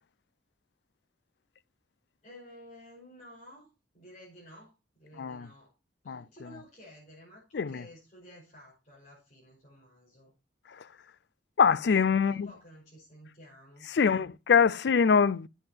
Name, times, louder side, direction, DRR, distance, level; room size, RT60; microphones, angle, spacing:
voice 1, 2.2-5.8 6.0-10.3 12.1-14.3, equal, 40° left, 5.4 m, -53 dB
voice 2, 11.6-12.5 13.9-15.5, left 6 dB, 70° left, 0.4 m, -24 dB
9.4 x 7.8 x 4.5 m
head